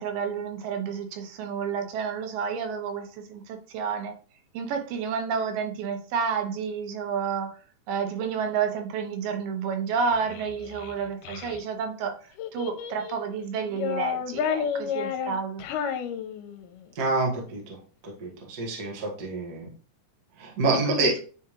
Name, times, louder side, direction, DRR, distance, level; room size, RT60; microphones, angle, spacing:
voice 1, 0.0-4.1 4.5-7.6 7.9-12.1 12.5-15.6 20.8-21.2, right 6 dB, 90° right, 6 dB, 2.5 m, -30 dB
Child speech kid speaking, 9.9-11.6 12.4-13.2 13.7-16.8, left 8 dB, 80° left, 2.1 m, -32 dB
voice 2, 16.9-17.6 18.2-19.7 20.4-21.2, right 2 dB, 45° right, -1 dB, 1.3 m, -27 dB
9.3 x 3.5 x 3.1 m, 0.40 s
omnidirectional pair, 3.9 m